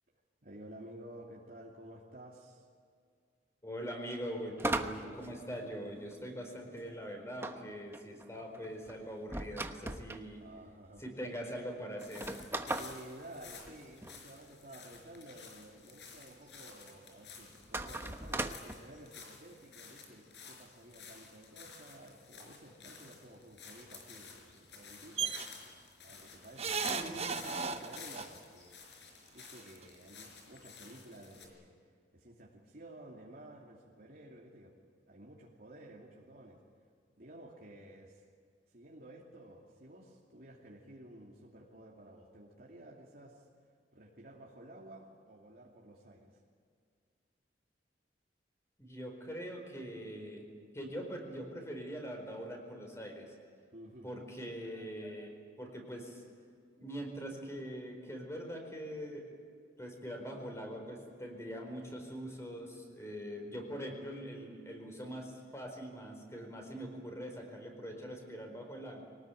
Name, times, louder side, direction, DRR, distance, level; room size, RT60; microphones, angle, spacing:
voice 1, 0.4-2.7 10.4-11.0 12.7-25.5 26.0-28.7 29.3-34.7 35.1-36.6 37.1-38.2 38.7-43.5 43.9-46.4 53.7-54.2, right 1 dB, 55° right, -3 dB, 2.7 m, -53 dB
voice 2, 3.6-10.4 11.0-12.4 26.9-27.3 48.8-50.4 50.7-53.3 54.0-55.3 55.6-56.2 56.8-59.2 59.8-69.0, equal, 15° left, 2 dB, 4.7 m, -43 dB
sound 1, 4.6-6.1 7.4-10.2 11.0-11.1 11.3-11.4 12.0-14.2 17.6-18.7, right 2 dB, 15° right, 1.1 m, -38 dB
sound 2, 12.0-31.5, left 5 dB, 80° left, 5.0 m, -52 dB
sound 3, 25.2-25.5 26.6-28.3 29.4-29.5 29.8-29.9, right 5 dB, 35° right, 1.1 m, -35 dB
23.5 x 19.0 x 9.2 m, 2.1 s
head